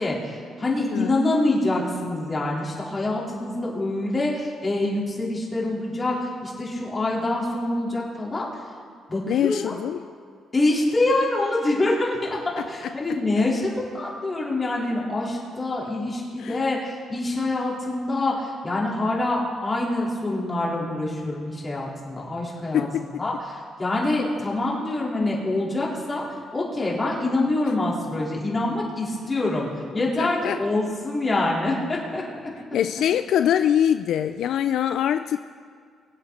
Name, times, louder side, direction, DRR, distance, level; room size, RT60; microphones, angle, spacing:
voice 1, 0.0-8.6 9.1-9.7 10.5-26.2 26.5-29.7 29.9-32.2, left 2 dB, 25° left, -4 dB, 4.3 m, -25 dB
voice 2, 9.3-10.0 16.4-16.6 22.7-23.0 30.2-30.6 32.7-35.4, left 10 dB, 75° left, 10 dB, 0.4 m, -23 dB
23.5 x 8.3 x 4.3 m, 2.1 s
cardioid pair, 90°, 0 cm